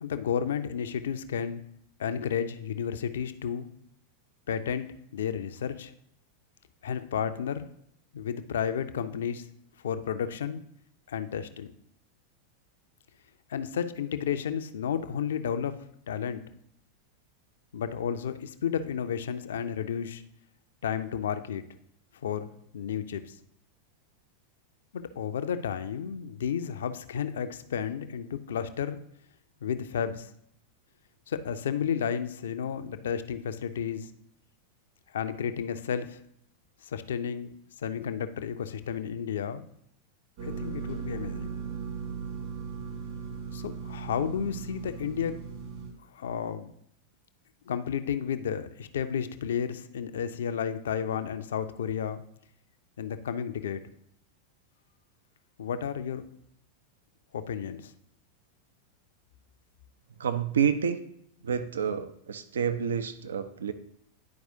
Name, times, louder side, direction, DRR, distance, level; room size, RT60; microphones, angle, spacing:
voice 1, 0.0-1.6 2.0-3.7 4.5-5.9 6.8-7.7 8.1-9.4 9.8-10.6 11.1-11.7 13.5-15.7 16.1-16.4 17.7-20.2 20.8-21.6 22.2-23.3 24.9-29.0 29.6-30.3 31.3-34.1 35.1-36.2 36.8-37.5 37.8-39.6 40.4-41.6 43.5-45.4 46.1-46.7 47.7-52.2 53.0-53.8 55.6-56.2 57.3-57.9, left 8 dB, 60° left, 11 dB, 0.4 m, -32 dB
sound 1, 40.4-45.9, right 6 dB, 50° right, 2.2 m, -37 dB
voice 2, 60.2-61.0 61.4-63.7, right 7 dB, 65° right, 10 dB, 0.4 m, -28 dB
10.5 x 4.6 x 2.7 m, 0.70 s
figure-of-eight pair, 90°, 0 cm